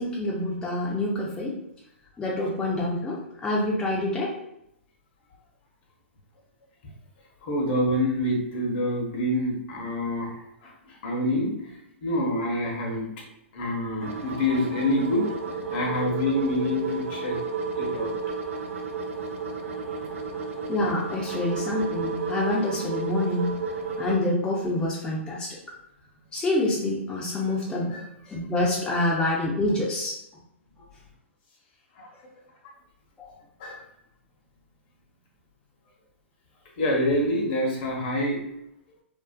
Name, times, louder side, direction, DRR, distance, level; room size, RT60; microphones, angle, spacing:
voice 1, 0.0-1.5 2.2-4.3 20.7-23.5 24.0-25.5 26.3-28.0 28.3-30.1 33.2-33.3, left 1 dB, 10° left, -5 dB, 0.5 m, -27 dB
voice 2, 7.4-10.3 10.9-11.5 12.0-13.1 13.5-15.3 15.7-17.4 17.8-18.1 27.9-28.1 32.0-32.1 33.6-33.8 36.8-38.4, left 1 dB, 50° left, 0 dB, 0.8 m, -26 dB
sound 1, 14.0-24.2, right 4 dB, 80° right, 0.4 m, -32 dB
2.5 x 2.3 x 2.2 m, 0.79 s
hypercardioid pair, 120°, 7 cm